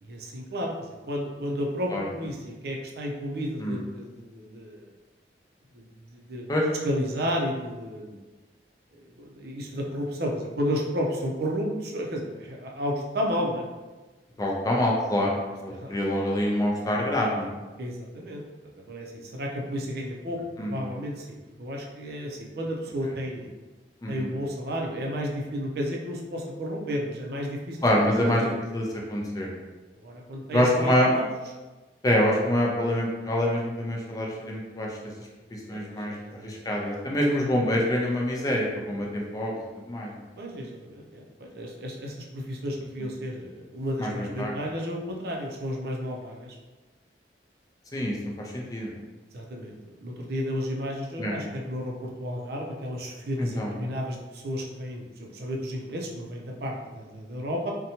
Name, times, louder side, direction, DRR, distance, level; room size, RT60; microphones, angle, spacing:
voice 1, 0.0-4.9 5.7-5.8 6.1-6.5 6.8-8.2 9.0-13.6 15.7-15.9 17.8-18.4 18.8-23.5 24.1-27.8 28.1-28.3 30.0-31.3 35.7-36.6 40.4-46.6 49.3-57.7, equal, 60° right, 0 dB, 0.5 m, -32 dB
voice 2, 14.4-17.5 20.6-20.8 24.0-24.3 27.8-29.5 30.5-31.1 32.0-35.0 35.5-39.6 39.9-40.1 44.0-44.6 47.9-49.0 51.2-51.4 53.4-53.7, left 1 dB, 20° left, -2 dB, 0.4 m, -26 dB
2.7 x 2.2 x 2.8 m, 1.2 s
head